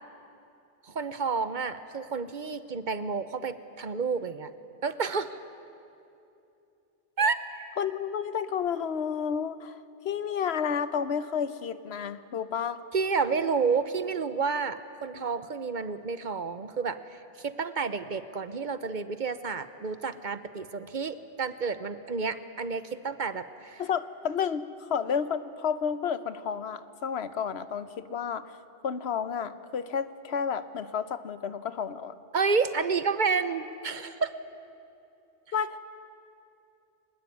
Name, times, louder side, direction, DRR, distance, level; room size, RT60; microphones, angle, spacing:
voice 1, 0.8-4.5 4.8-5.4 7.2-7.4 12.9-23.8 32.3-34.3, right 5 dB, 50° right, 12 dB, 1.0 m, -30 dB
voice 2, 7.8-9.8 10.0-12.8 23.8-28.5 28.8-32.1 35.5-35.8, left 7 dB, 90° left, 13 dB, 1.1 m, -31 dB
23.0 x 20.0 x 9.6 m, 2.7 s
omnidirectional pair, 1.0 m